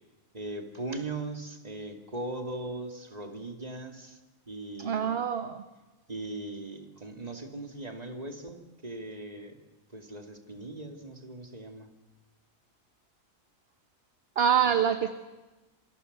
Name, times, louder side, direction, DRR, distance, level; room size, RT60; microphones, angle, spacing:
voice 1, 0.3-4.2 4.5-5.2 6.1-9.5 9.9-11.9 14.6-14.8, right 2 dB, 30° right, 4 dB, 2.6 m, -39 dB
voice 2, 4.8-5.6 14.4-15.2, right 8 dB, 50° right, 8 dB, 1.3 m, -25 dB
27.5 x 25.5 x 6.7 m, 1.1 s
omnidirectional pair, 1.4 m